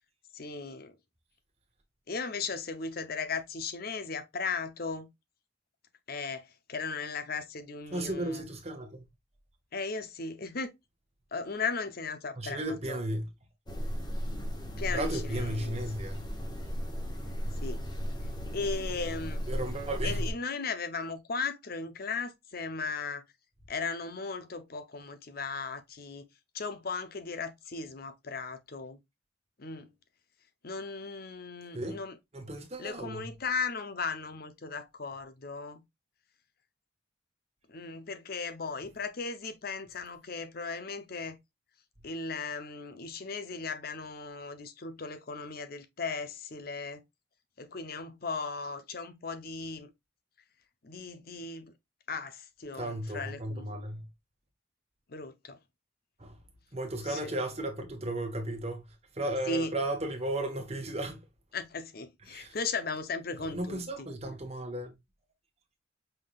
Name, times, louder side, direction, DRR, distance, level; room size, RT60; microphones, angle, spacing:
voice 1, 0.3-0.9 2.1-5.1 6.1-8.4 9.7-10.7 11.3-13.0 14.8-15.8 17.6-17.8 18.5-19.4 20.0-23.2 23.7-26.3 26.5-29.0 29.6-29.9 30.6-32.2 32.8-35.8 37.7-41.4 42.0-47.0 47.6-49.9 50.8-51.7 52.1-53.6 55.1-55.6 57.1-57.3 59.5-59.7 61.5-64.1, left 4 dB, 55° left, 0.8 m, -37 dB
voice 2, 7.9-9.1 12.4-13.3 14.9-16.3 19.5-20.3 31.7-32.0 32.3-33.3 52.7-54.0 56.2-56.4 56.7-58.8 59.1-61.2 62.3-62.6 63.4-64.9, right 1 dB, 35° right, 1.3 m, -34 dB
sound 1, 13.7-20.3, equal, 25° left, 1.2 m, -35 dB
5.5 x 3.7 x 2.3 m
head